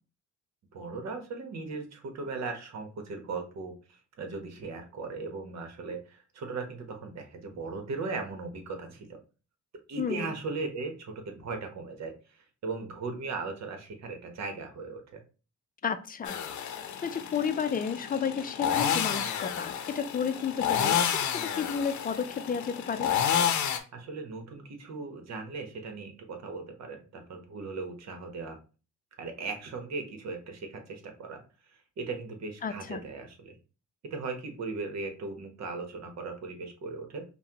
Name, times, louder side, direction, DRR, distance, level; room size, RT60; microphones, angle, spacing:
voice 1, 0.7-9.2 9.9-15.2 23.9-28.6 29.2-31.4 31.7-33.6 34.1-37.2, right 4 dB, 60° right, 5 dB, 1.1 m, -38 dB
voice 2, 10.0-10.3 15.8-16.4 17.0-21.0 21.3-23.1 32.6-33.0, left 6 dB, 30° left, 10 dB, 0.5 m, -32 dB
sound 1, 16.2-23.8, left 8 dB, 70° left, 0.7 m, -30 dB
5.5 x 2.2 x 2.9 m, 0.34 s
cardioid pair, 90°, 30 cm